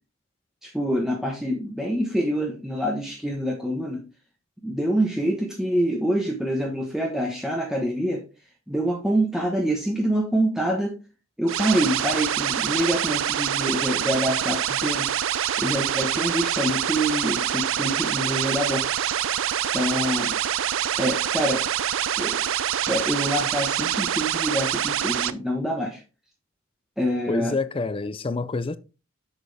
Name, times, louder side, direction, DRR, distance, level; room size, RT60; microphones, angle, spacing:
voice 1, 0.6-4.0 4.6-8.2 8.7-10.9 11.4-15.1 15.6-18.9 19.7-20.4 21.0-21.6 22.2-22.5 22.9-26.0 27.0-27.6, equal, ahead, 1.0 m, -26 dB
sound 1, 11.5-25.3, right 10 dB, 60° right, 0.4 m, -25 dB
voice 2, 27.3-28.8, left 3 dB, 25° left, 0.5 m, -27 dB
7.1 x 6.6 x 3.4 m
head